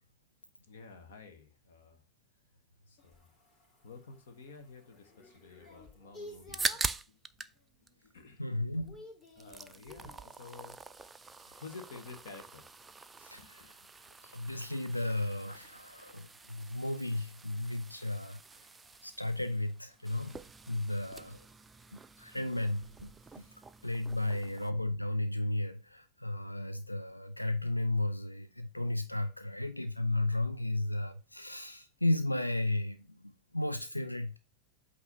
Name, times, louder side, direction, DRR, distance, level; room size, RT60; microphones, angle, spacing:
voice 1, 0.7-2.0 2.9-3.3 3.8-7.2 8.0-8.4 9.3-10.8 11.6-12.7 13.3-13.9 24.4-24.5, left 4 dB, 60° left, 1.1 m, -51 dB
sound 1, 3.0-7.0 7.5-8.0 8.2-10.3 12.8-21.2, left 1 dB, 30° left, 2.2 m, -56 dB
sound 2, 6.3-7.6 7.9-8.9 9.2-24.7, right 4 dB, 10° right, 0.3 m, -44 dB
voice 2, 8.4-9.0 13.2-13.7 14.2-18.4 19.0-20.4 20.7-21.4 21.9-23.1 23.4-23.5 23.8-34.4, left 1 dB, 85° left, 0.4 m, -34 dB
8.2 x 2.8 x 5.2 m
figure-of-eight pair, 90°, 0 cm